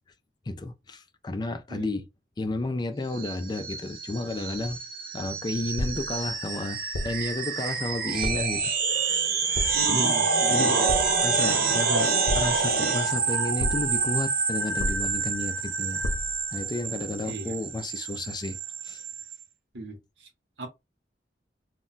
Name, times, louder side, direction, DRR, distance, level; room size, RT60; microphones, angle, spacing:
voice 1, 0.5-2.1 2.4-4.8 5.1-9.3 9.9-10.1 10.5-10.9 11.2-16.0 16.5-18.6 18.8-19.0, left 2 dB, 25° left, 0.4 m, -32 dB
sound 1, 3.1-19.4, right 5 dB, 55° right, 0.7 m, -27 dB
sound 2, 5.7-6.2 6.9-7.3 8.2-8.6 9.5-10.0 10.9-11.3 12.3-12.8 13.6-14.0 14.8-15.3 16.0-16.5, left 1 dB, 60° left, 0.6 m, -32 dB
voice 2, 9.7-10.8 17.2-17.6 19.7-20.3 20.6-20.7, equal, 85° right, 0.9 m, -38 dB
2.2 x 2.1 x 3.8 m
head